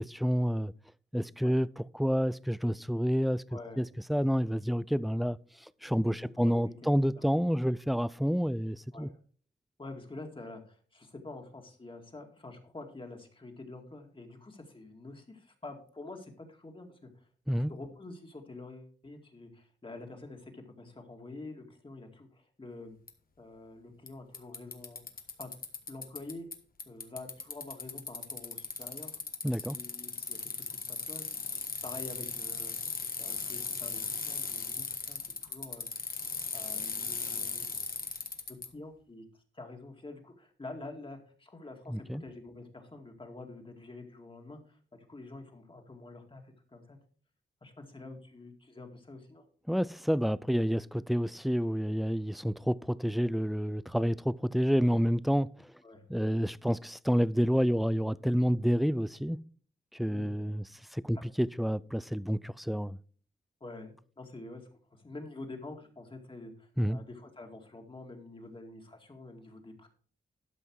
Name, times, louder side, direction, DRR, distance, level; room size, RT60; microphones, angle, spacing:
voice 1, 0.1-0.7 1.1-3.4 3.8-3.9 4.1-5.4 5.8-9.1 17.5-17.7 29.4-29.8 41.9-42.2 49.7-55.7 56.1-59.4 59.9-60.6 60.9-63.0 66.8-67.0, equal, ahead, 0.4 m, -29 dB
voice 2, 3.5-3.8 6.2-7.2 8.9-9.1 9.8-17.3 17.7-23.0 23.4-25.0 25.4-25.5 25.9-26.5 26.9-29.2 29.6-31.6 31.8-32.7 33.2-35.9 36.5-37.8 38.5-39.2 39.5-47.0 47.6-49.5 55.8-56.1 60.0-60.3 61.1-61.2 63.6-64.6 64.9-69.9, left 2 dB, 25° left, 2.1 m, -47 dB
Bicycle, 23.1-23.2 24.1-24.2 24.3-26.5 26.8-38.7, left 5 dB, 50° left, 1.4 m, -37 dB
12.5 x 5.7 x 4.7 m
wide cardioid pair, 100°, 19 cm